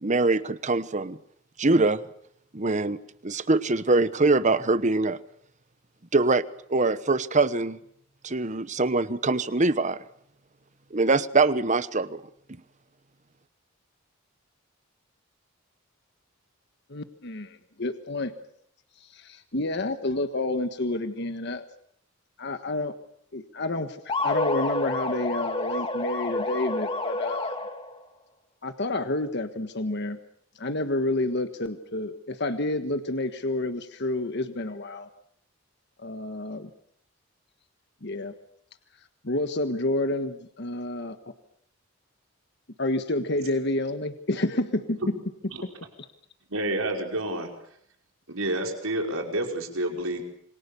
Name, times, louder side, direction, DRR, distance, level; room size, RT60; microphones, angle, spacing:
voice 1, 0.0-1.2 1.6-2.0 2.5-5.2 6.1-6.4 6.7-7.8 8.2-10.0 10.9-12.2, right 3 dB, 35° right, 14 dB, 1.1 m, -23 dB
voice 2, 16.9-18.3 19.0-21.6 22.4-22.9 23.3-27.6 28.6-30.2 30.5-35.1 36.0-36.7 38.0-38.3 39.2-41.2 42.8-45.0 45.6-45.7, left 2 dB, 55° left, 9 dB, 1.4 m, -29 dB
sound 1, 24.1-28.0, left 2 dB, 25° left, 2.6 m, -29 dB
voice 3, 46.5-47.5 48.3-50.2, right 1 dB, 90° right, 2 dB, 5.3 m, -29 dB
27.5 x 24.5 x 6.9 m, 0.69 s
head